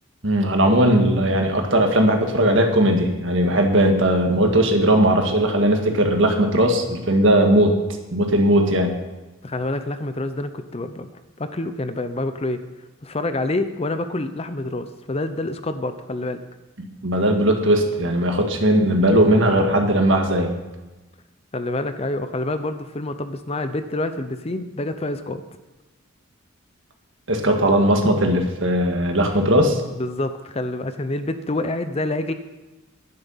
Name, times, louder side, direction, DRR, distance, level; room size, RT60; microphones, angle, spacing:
voice 1, 0.2-7.7 8.1-8.9 17.0-20.5 27.3-29.8, right 1 dB, 60° right, 3 dB, 1.8 m, -18 dB
voice 2, 9.4-12.6 13.0-16.4 21.5-25.4 29.9-32.3, left 2 dB, 30° left, 10 dB, 0.6 m, -27 dB
11.0 x 10.5 x 5.7 m, 1.1 s
head